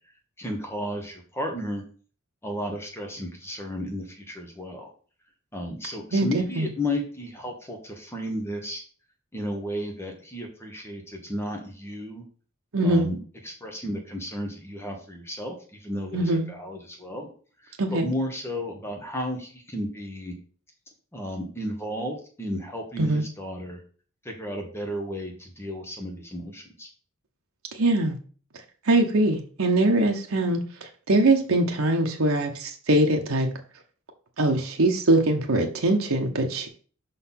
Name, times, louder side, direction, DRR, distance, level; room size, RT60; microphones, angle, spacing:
voice 1, 0.4-1.8 2.4-4.9 5.5-8.8 9.3-12.2 12.8-13.2 13.4-17.3 17.6-20.3 21.1-23.8 24.2-26.9, equal, 10° left, 2 dB, 1.2 m, -33 dB
voice 2, 6.1-6.7 12.7-13.1 16.1-16.4 17.8-18.1 23.0-23.2 27.7-28.2 28.9-30.6 31.1-33.5 34.4-36.7, right 2 dB, 75° right, 2 dB, 0.9 m, -22 dB
5.5 x 4.1 x 5.7 m, 0.42 s
head